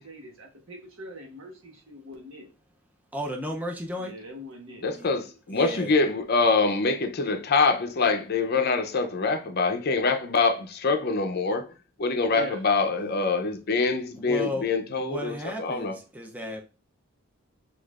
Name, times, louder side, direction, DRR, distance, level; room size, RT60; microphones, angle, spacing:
voice 1, 0.0-2.5 4.0-4.8 12.3-12.6, equal, 70° right, 1.3 m, -42 dB
voice 2, 3.1-4.1 4.9-5.1 5.5-5.9 14.2-14.7 15.0-16.6, left 1 dB, 10° right, 0.5 m, -34 dB
voice 3, 4.8-11.7 12.0-15.9, left 4 dB, 50° left, 0.6 m, -25 dB
6.4 x 2.5 x 2.4 m
head